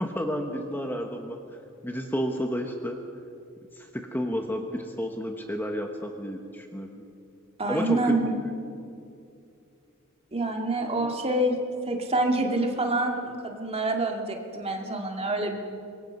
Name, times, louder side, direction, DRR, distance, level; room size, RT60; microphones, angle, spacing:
voice 1, 0.0-1.4 1.8-3.0 3.8-6.9 7.7-8.3 11.0-11.1, equal, 10° left, 4 dB, 1.1 m, -31 dB
voice 2, 7.6-8.3 10.3-11.6 11.8-15.6, right 2 dB, 30° right, 2 dB, 2.3 m, -27 dB
25.0 x 21.5 x 5.4 m, 2.5 s
head